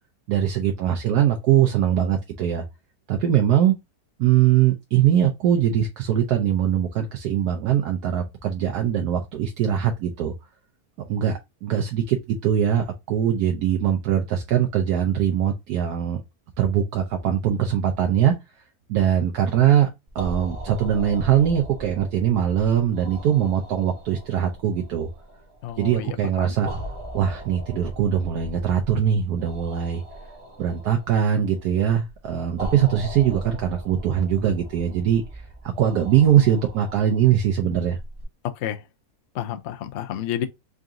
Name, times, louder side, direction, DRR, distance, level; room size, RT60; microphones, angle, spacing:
voice 1, 0.3-2.6 3.1-3.7 4.2-10.3 11.1-16.2 16.6-18.3 18.9-19.9 20.1-25.1 25.8-26.7 27.1-30.0 30.6-38.0, right 9 dB, 80° right, 1.2 m, -22 dB
sound 1, 20.1-38.2, right 1 dB, 25° right, 0.9 m, -39 dB
voice 2, 25.6-26.5 38.6-38.8 39.3-40.5, left 11 dB, 70° left, 0.7 m, -30 dB
3.8 x 2.6 x 3.5 m
omnidirectional pair, 1.6 m